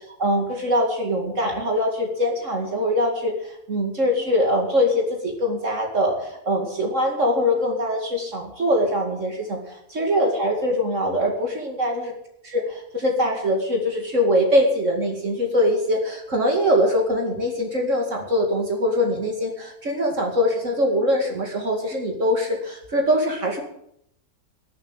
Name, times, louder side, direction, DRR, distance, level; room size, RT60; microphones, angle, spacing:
voice 1, 0.2-12.1 12.4-23.6, equal, 55° right, 1 dB, 2.6 m, -23 dB
18.5 x 7.4 x 7.4 m, 0.74 s
omnidirectional pair, 1.6 m